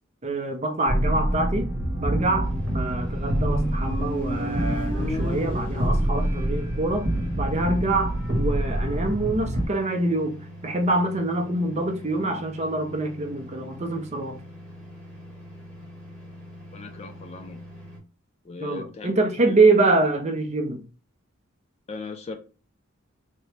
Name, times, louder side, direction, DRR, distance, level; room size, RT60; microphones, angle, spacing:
voice 1, 0.2-1.7 2.0-7.1 7.3-10.4 10.6-14.4 18.6-20.8, right 2 dB, 30° right, 0.5 m, -25 dB
sound 1, 0.9-9.7, right 1 dB, 70° right, 0.9 m, -26 dB
sound 2, 2.4-18.0, equal, 5° left, 1.0 m, -43 dB
Motorcycle, 3.1-6.8, equal, 90° left, 1.8 m, -35 dB
voice 2, 16.7-17.6 18.4-19.2 19.5-19.6 21.9-22.4, left 4 dB, 30° left, 0.3 m, -37 dB
3.8 x 2.2 x 3.2 m
head